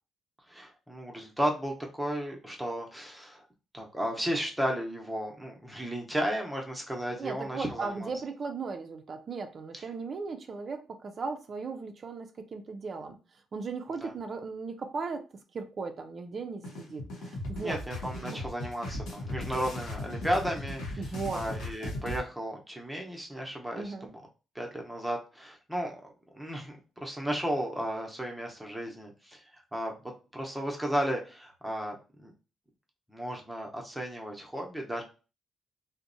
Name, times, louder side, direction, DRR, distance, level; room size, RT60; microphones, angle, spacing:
voice 1, 0.5-3.5 3.7-8.1 14.0-14.1 17.6-24.2 24.5-29.9 30.3-32.3 33.1-35.0, equal, 5° right, 0.7 m, -34 dB
voice 2, 7.1-13.2 13.5-15.3 15.5-17.8 18.2-18.4 21.0-21.4 23.7-24.1, right 4 dB, 45° right, 0.4 m, -37 dB
sound 1, 16.6-22.2, left 1 dB, 85° left, 0.7 m, -37 dB
2.6 x 2.0 x 2.6 m
cardioid pair, 90°, 0 cm